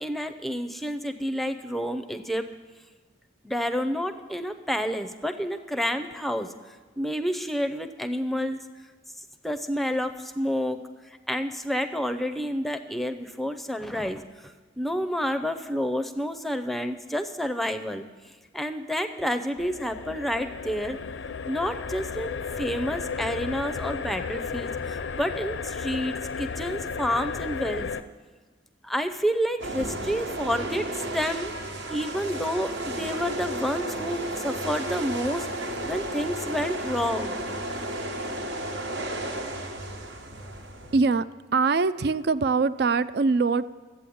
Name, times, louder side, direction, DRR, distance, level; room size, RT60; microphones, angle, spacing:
voice 1, 0.0-2.5 3.4-6.5 7.0-8.6 9.4-10.8 11.3-14.2 14.8-18.0 18.5-21.0 21.5-27.9 28.8-31.5 31.9-35.5 35.9-37.4, equal, ahead, 8 dB, 0.6 m, -29 dB
sound 1, 19.6-28.0, left 5 dB, 75° left, 0.5 m, -34 dB
sound 2, 29.6-41.0, right 1 dB, 75° right, 1.4 m, -33 dB
voice 2, 40.9-41.2 41.5-43.7, right 4 dB, 55° right, 14 dB, 0.4 m, -23 dB
13.0 x 8.4 x 8.6 m, 1.4 s
head